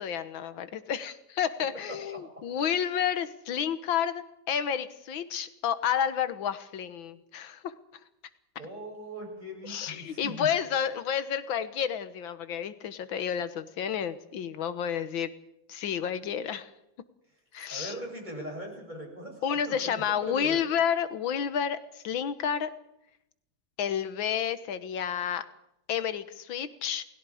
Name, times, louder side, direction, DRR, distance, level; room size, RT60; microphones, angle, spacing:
voice 1, 0.0-7.7 9.6-15.3 15.7-16.7 17.5-17.9 19.4-22.7 23.8-25.5 25.9-27.1, left 8 dB, 90° left, 12 dB, 1.9 m, -30 dB
voice 2, 1.9-2.5 8.6-10.5 17.7-20.6, equal, 20° right, 1 dB, 7.4 m, -40 dB
29.0 x 20.5 x 5.0 m, 0.85 s
omnidirectional pair, 2.1 m